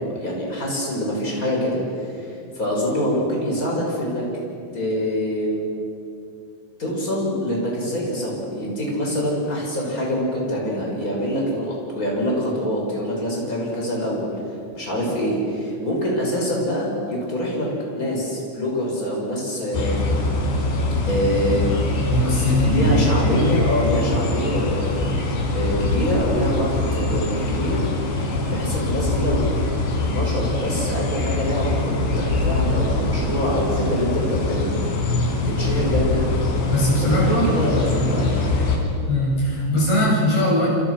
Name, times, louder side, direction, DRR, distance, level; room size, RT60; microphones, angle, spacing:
voice 1, 0.0-2.3 2.5-4.2 4.7-5.6 6.8-14.3 14.7-17.7 17.9-20.1 21.1-21.7 22.5-27.8 28.5-29.5 30.1-34.7 35.4-36.3 37.0-38.5, equal, 20° left, -2 dB, 6.7 m, -25 dB
sound 1, 19.7-38.8, left 2 dB, 80° left, 6.2 m, -23 dB
voice 2, 22.1-23.2 36.7-37.5 38.0-38.3 39.1-40.7, equal, 55° left, -5 dB, 9.9 m, -20 dB
28.5 x 27.5 x 6.4 m, 2.6 s
omnidirectional pair, 5.1 m